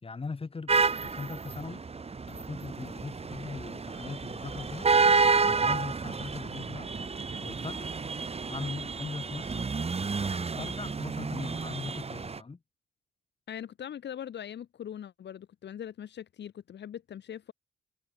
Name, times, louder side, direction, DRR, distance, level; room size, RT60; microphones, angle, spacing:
voice 1, 0.0-1.8 2.3-4.9 5.5-7.1 7.4-7.9 8.5-9.7 10.3-12.6, left 4 dB, 30° left, 5.9 m, -40 dB
sound 1, 0.7-12.4, right 4 dB, 30° right, 4.0 m, -30 dB
voice 2, 13.5-17.5, left 9 dB, 60° left, 3.3 m, -41 dB
cardioid pair, 90°, 20 cm